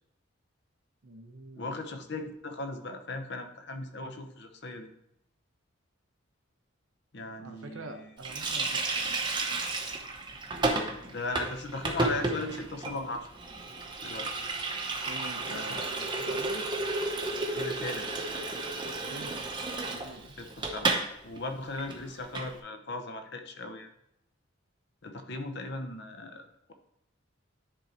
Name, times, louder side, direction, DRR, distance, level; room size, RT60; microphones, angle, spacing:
voice 1, 1.0-1.8 7.4-9.1 15.0-16.7 18.8-20.3 25.3-25.5, right 2 dB, 85° right, 6 dB, 0.9 m, -46 dB
voice 2, 1.6-4.9 7.1-8.1 11.1-13.3 14.0-14.3 15.5-15.8 16.2-16.4 17.5-18.2 20.4-21.0 21.2-23.9 25.0-26.7, left 2 dB, 55° left, 6 dB, 0.9 m, -38 dB
Water tap faucet, 8.2-21.1 21.4-21.5 21.8-22.5, right 2 dB, 20° right, 0.8 m, -32 dB
10.0 x 3.9 x 4.3 m, 0.80 s
head